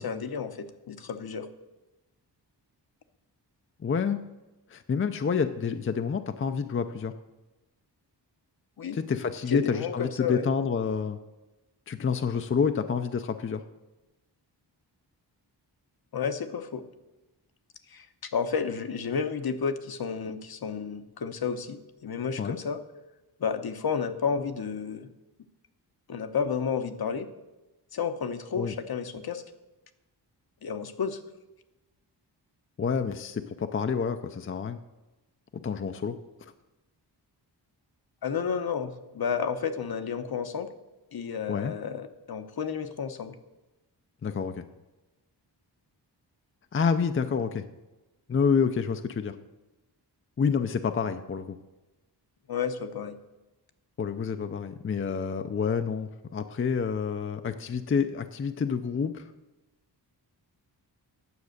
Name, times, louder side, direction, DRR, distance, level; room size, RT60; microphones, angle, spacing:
voice 1, 0.0-1.5 8.8-9.0 9.5-10.4 16.1-16.8 17.9-18.1 18.3-22.8 23.4-25.1 26.1-27.3 27.9-29.4 30.6-31.2 38.2-40.7 41.1-43.3 52.5-53.2, left 6 dB, 60° left, 9 dB, 0.9 m, -31 dB
voice 2, 3.8-4.2 4.7-7.1 8.9-11.2 11.9-13.6 22.4-22.6 28.6-28.7 32.8-34.8 35.6-36.5 41.5-41.7 44.2-44.6 46.7-47.7 48.3-49.3 50.4-51.6 54.0-59.2, left 6 dB, 30° left, 8 dB, 0.5 m, -28 dB
9.6 x 7.3 x 6.5 m, 1.1 s
wide cardioid pair, 115°, 42 cm